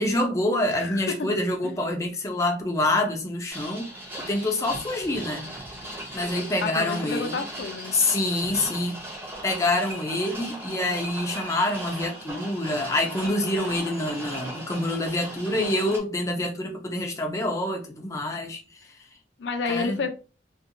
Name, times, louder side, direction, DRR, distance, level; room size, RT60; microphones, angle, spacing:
voice 1, 0.0-3.9 4.2-5.5 6.1-7.3 7.9-9.0 9.4-18.6 19.7-20.0, left 1 dB, 15° left, 0.4 m, -26 dB
voice 2, 0.7-1.3 1.6-1.7 6.6-7.9 15.6-15.9 19.4-20.1, left 4 dB, 85° left, 0.4 m, -30 dB
sound 1, 3.5-16.0, right 1 dB, 10° right, 0.7 m, -38 dB
2.6 x 2.3 x 2.5 m
head